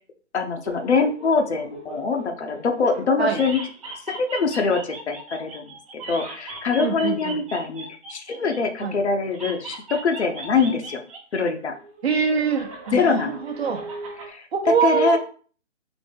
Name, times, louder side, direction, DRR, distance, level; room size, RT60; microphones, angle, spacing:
voice 1, 0.3-3.6 4.1-5.7 6.1-11.0 11.3-11.7 12.9-13.4 14.2-15.2, left 4 dB, 65° left, 5 dB, 0.8 m, -23 dB
sound 1, 0.6-3.0 3.3-8.9 9.3-11.4 11.7-14.3, right 3 dB, 25° right, 0.9 m, -39 dB
voice 2, 6.8-7.4 8.8-8.9 12.0-13.8 14.5-15.2, right 6 dB, 60° right, 4 dB, 0.8 m, -24 dB
4.1 x 3.2 x 3.4 m, 0.42 s
hypercardioid pair, 160°, 37 cm